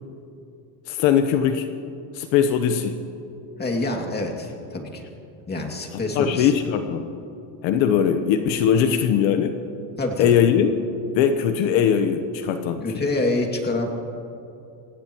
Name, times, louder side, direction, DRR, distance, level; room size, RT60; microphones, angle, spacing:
voice 1, 0.9-1.7 2.1-3.0 6.1-7.1 7.6-9.6 10.2-10.7 11.1-12.8, left 8 dB, 70° left, 7 dB, 1.2 m, -20 dB
voice 2, 3.6-5.1 5.5-6.5 10.0-10.3 12.8-14.0, left 2 dB, 20° left, 1 dB, 2.5 m, -26 dB
27.5 x 16.5 x 3.1 m, 2.7 s
cardioid pair, 125°, 48 cm